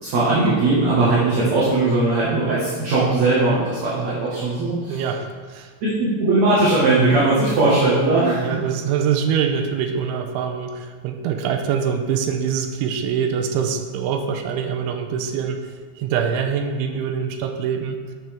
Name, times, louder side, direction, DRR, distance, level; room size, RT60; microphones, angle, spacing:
voice 1, 0.0-5.1 5.8-8.6, right 2 dB, 55° right, -9 dB, 2.1 m, -19 dB
voice 2, 3.9-4.5 4.9-5.7 8.4-15.7 16.0-18.0, right 7 dB, 90° right, 5 dB, 3.2 m, -24 dB
9.0 x 7.5 x 3.5 m, 1.5 s
omnidirectional pair, 5.4 m